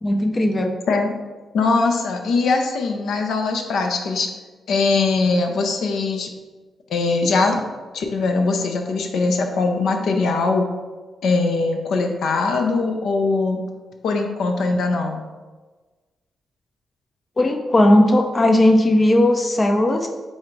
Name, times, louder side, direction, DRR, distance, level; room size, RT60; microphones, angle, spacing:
voice 1, 0.0-0.7 17.4-20.1, left 1 dB, 30° left, 4 dB, 0.4 m, -17 dB
voice 2, 1.5-4.3 4.7-6.3 6.9-7.6 7.9-10.7 11.2-13.6 14.0-15.2, left 3 dB, 75° left, 4 dB, 0.5 m, -21 dB
4.1 x 2.5 x 4.4 m, 1.3 s
cardioid pair, 95°, 0 cm